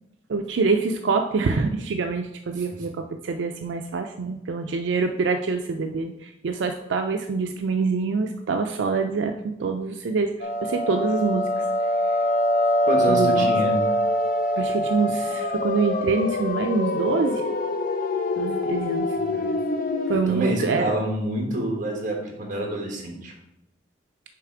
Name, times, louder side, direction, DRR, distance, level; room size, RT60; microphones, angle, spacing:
voice 1, 0.3-9.3 9.6-11.6 13.1-13.5 14.6-17.4 18.4-19.0 20.1-20.9, right 4 dB, 85° right, 5 dB, 0.4 m, -25 dB
sound 1, 10.4-20.2, left 1 dB, 50° left, 0.5 m, -24 dB
voice 2, 12.8-13.8 19.2-19.5 20.1-23.3, right 1 dB, 45° right, 0 dB, 1.5 m, -27 dB
6.7 x 3.2 x 4.9 m, 0.86 s
head